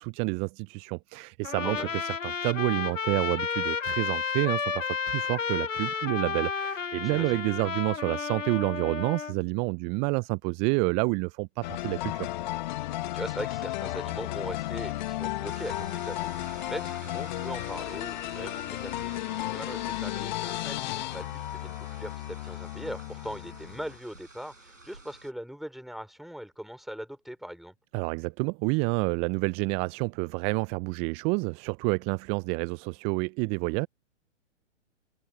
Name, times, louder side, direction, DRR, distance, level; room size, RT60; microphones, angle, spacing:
voice 1, 0.0-12.3 27.9-33.9, right 32 dB, 15° right, 0.6 m, -29 dB
Trumpet, 1.4-9.3, left 6 dB, 85° left, 0.9 m, -32 dB
voice 2, 1.6-2.0 7.0-7.4 12.9-27.7, equal, ahead, 5.5 m, -40 dB
sound 1, 11.6-24.0, left 16 dB, 40° left, 2.0 m, -34 dB
sound 2, 15.4-25.3, right 2 dB, 85° right, 5.9 m, -49 dB
open air
figure-of-eight pair, 125°, 37 cm